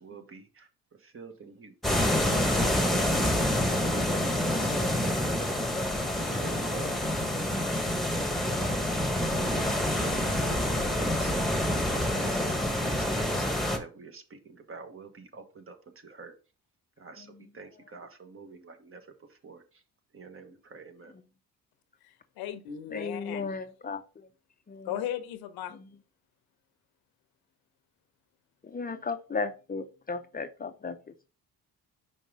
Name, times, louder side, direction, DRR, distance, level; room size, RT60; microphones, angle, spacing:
voice 1, 0.0-0.7 1.0-1.7 2.3-2.7 3.2-3.4 3.7-5.1 5.4-5.6 6.3-7.0 8.4-8.9 9.3-11.3 11.6-13.5 13.8-15.7 16.0-16.3 17.0-17.3 17.5-19.0 19.4-19.6 20.1-21.1, right 4 dB, 35° right, 1.3 m, -46 dB
sound 1, 1.8-13.8, left 1 dB, ahead, 1.3 m, -27 dB
voice 2, 17.2-17.5 21.1-21.2 22.9-24.3 24.7-25.0 25.7-25.8 28.6-31.3, left 4 dB, 25° left, 0.6 m, -36 dB
voice 3, 22.0-23.5 24.8-25.7, left 10 dB, 90° left, 0.9 m, -36 dB
5.4 x 5.2 x 3.7 m
cardioid pair, 95°, 36 cm